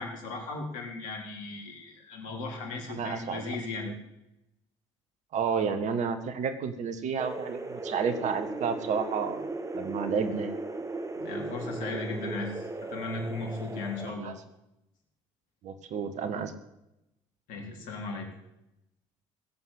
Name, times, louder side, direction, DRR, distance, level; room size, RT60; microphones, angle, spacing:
voice 1, 0.0-3.9 11.2-12.6 12.9-14.3 17.5-18.3, left 3 dB, 60° left, 2 dB, 4.0 m, -36 dB
voice 2, 2.9-3.6 3.8-3.9 5.3-10.5 14.1-14.4 15.6-16.5, right 6 dB, 55° right, 10 dB, 1.7 m, -31 dB
sound 1, 7.2-14.1, right 2 dB, 20° right, 2.0 m, -37 dB
18.0 x 8.1 x 8.4 m, 0.87 s
hypercardioid pair, 55°, 15 cm